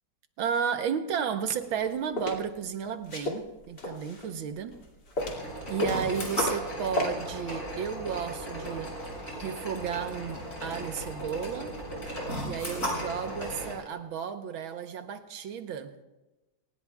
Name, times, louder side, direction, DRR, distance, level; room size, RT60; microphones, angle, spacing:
voice 1, 0.4-4.7 5.7-8.9 9.4-11.8 12.4-15.9, right 7 dB, 75° right, 1.8 m, -33 dB
sound 1, 1.6-2.4 3.0-4.3 4.7-5.5 5.8-6.7 7.0-7.1, left 1 dB, 55° left, 3.1 m, -32 dB
sound 2, 5.2-13.7, equal, 35° left, 6.9 m, -36 dB
29.0 x 18.5 x 2.4 m
omnidirectional pair, 2.3 m